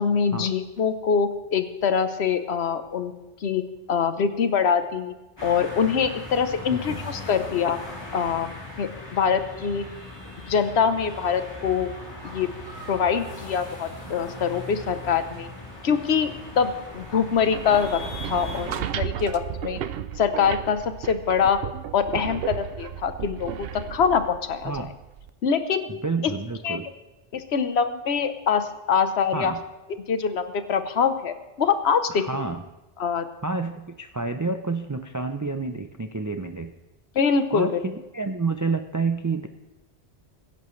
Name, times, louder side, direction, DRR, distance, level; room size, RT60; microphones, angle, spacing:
voice 1, 0.0-3.1 3.4-3.6 3.9-5.1 5.4-7.8 8.1-8.5 8.8-9.8 10.5-11.9 12.2-12.5 12.9-15.5 15.8-16.3 16.6-19.8 20.2-21.6 21.9-23.5 23.9-24.7 25.4-25.9 26.6-26.8 27.3-29.5 30.1-30.4 30.7-32.2 33.0-33.2 37.1-37.8, left 6 dB, 75° left, 9 dB, 1.2 m, -24 dB
sound 1, 5.4-18.8, left 1 dB, 20° left, 3.2 m, -39 dB
sound 2, 17.3-25.3, right 10 dB, 65° right, 0.8 m, -34 dB
voice 2, 25.9-26.9 29.3-29.6 32.1-32.6 33.4-36.7 37.5-39.5, right 3 dB, 25° right, 7 dB, 0.4 m, -29 dB
23.0 x 11.0 x 3.2 m, 1.0 s
omnidirectional pair, 1.1 m